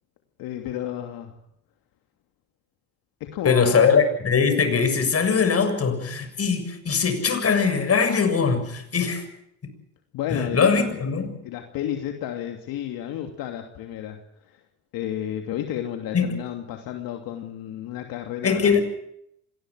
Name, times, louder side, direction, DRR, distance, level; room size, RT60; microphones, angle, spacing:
voice 1, 0.4-1.4 3.2-3.9 10.1-11.0 11.4-14.2 14.5-14.6 14.9-18.7, left 11 dB, 75° left, 2.8 m, -32 dB
voice 2, 3.4-9.3 10.3-11.3 16.1-16.4 18.4-18.8, left 5 dB, 40° left, 7.1 m, -21 dB
26.0 x 20.0 x 6.4 m
supercardioid pair, 70°, 35 cm